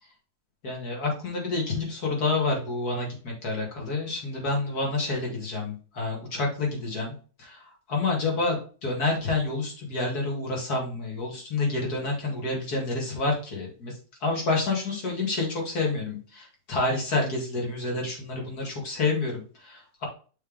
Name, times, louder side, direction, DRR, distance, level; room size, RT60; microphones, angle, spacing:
voice 1, 0.6-7.1 7.4-7.6 7.9-8.6 8.8-13.9 14.2-20.1, left 3 dB, 65° left, -1 dB, 2.7 m, -28 dB
6.1 x 3.6 x 5.1 m, 0.38 s
omnidirectional pair, 1.8 m